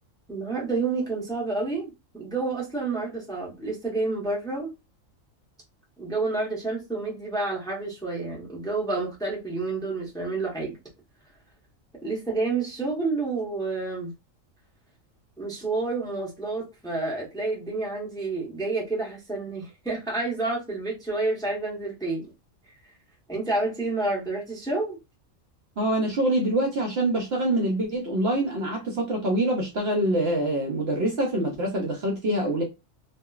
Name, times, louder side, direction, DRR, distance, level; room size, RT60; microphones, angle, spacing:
voice 1, 0.3-4.7 6.0-10.8 12.0-14.1 15.4-22.3 23.3-25.0, right 3 dB, 5° left, 0.7 m, -29 dB
voice 2, 25.8-32.6, right 1 dB, 60° right, 0.8 m, -25 dB
2.8 x 2.4 x 2.3 m
omnidirectional pair, 1.4 m